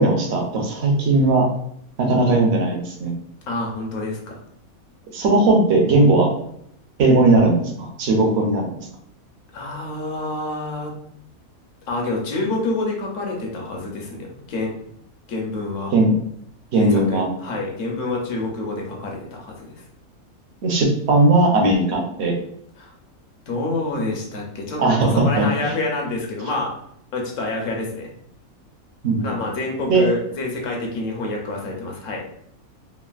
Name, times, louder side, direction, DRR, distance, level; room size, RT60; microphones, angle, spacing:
voice 1, 0.0-1.5 2.0-3.1 5.1-6.3 7.0-8.6 15.9-16.1 16.7-17.3 20.6-22.3 24.8-25.7 29.0-29.4 29.9-30.1, right 2 dB, 60° right, 1 dB, 0.7 m, -18 dB
voice 2, 3.5-4.4 9.5-10.9 11.9-14.7 15.3-15.9 16.8-19.8 22.8-22.9 23.5-26.8 27.1-28.1 29.2-32.2, left 2 dB, 65° left, 0 dB, 1.0 m, -27 dB
3.2 x 2.4 x 2.3 m, 0.70 s
omnidirectional pair, 1.5 m